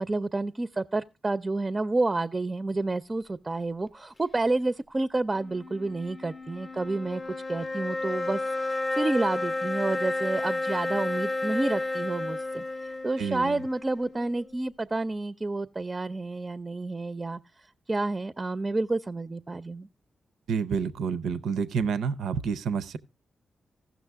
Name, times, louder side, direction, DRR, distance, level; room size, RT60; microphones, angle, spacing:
voice 1, 0.0-7.2 7.5-12.6 13.0-19.9, right 2 dB, 30° right, 0.4 m, -29 dB
sound 1, 5.3-14.7, left 2 dB, 30° left, 0.6 m, -32 dB
voice 2, 13.2-13.6 20.5-23.0, right 6 dB, 90° right, 0.5 m, -29 dB
15.5 x 6.1 x 3.4 m
cardioid pair, 60°, 0 cm